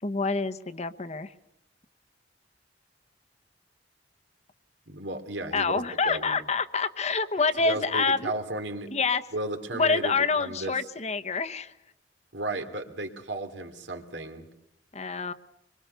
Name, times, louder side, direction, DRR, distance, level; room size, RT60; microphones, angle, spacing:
voice 1, 0.0-1.3 5.5-8.3 8.9-9.2 9.7-11.7 14.9-15.3, left 4 dB, 40° left, 9 dB, 1.0 m, -27 dB
voice 2, 4.9-6.4 7.6-8.9 9.3-10.7 12.3-14.4, right 2 dB, 80° right, 7 dB, 2.8 m, -34 dB
26.0 x 23.5 x 6.9 m, 0.81 s
head